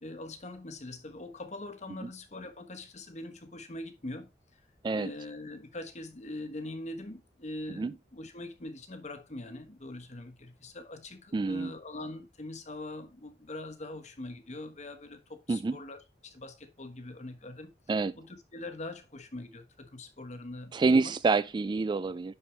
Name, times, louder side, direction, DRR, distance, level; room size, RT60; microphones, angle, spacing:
voice 1, 0.0-4.3 4.9-17.7 18.2-21.1, left 2 dB, 40° left, 1.2 m, -42 dB
voice 2, 11.3-11.7 15.5-15.8 17.9-18.1 20.7-22.3, right 4 dB, 25° right, 0.3 m, -27 dB
10.5 x 4.5 x 3.2 m
head